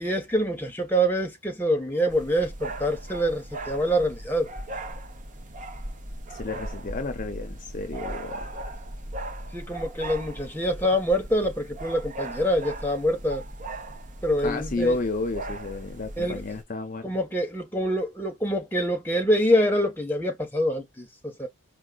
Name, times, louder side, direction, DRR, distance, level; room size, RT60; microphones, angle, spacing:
voice 1, 0.0-4.5 9.5-13.4 14.2-15.0 16.2-16.4 17.0-21.5, equal, 10° left, 1.1 m, -25 dB
sound 1, 2.1-16.6, right 1 dB, 35° right, 0.8 m, -38 dB
voice 2, 6.3-8.6 14.4-17.2, left 3 dB, 40° left, 0.6 m, -32 dB
4.7 x 2.2 x 2.4 m
head